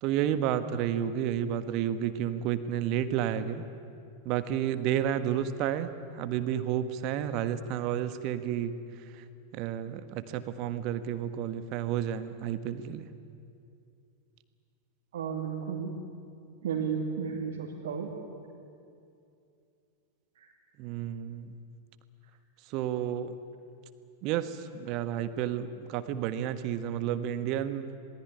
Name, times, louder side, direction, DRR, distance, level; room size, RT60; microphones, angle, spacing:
voice 1, 0.0-3.6 4.2-5.9 6.2-8.8 9.2-9.3 9.5-13.1 20.8-21.6 22.7-23.4 24.2-27.9, right 10 dB, 40° right, 11 dB, 1.5 m, -31 dB
voice 2, 15.1-15.9 16.6-18.1 20.4-20.5, right 6 dB, 60° right, -2 dB, 2.6 m, -33 dB
26.5 x 19.5 x 9.7 m, 2.5 s
figure-of-eight pair, 90°, 0 cm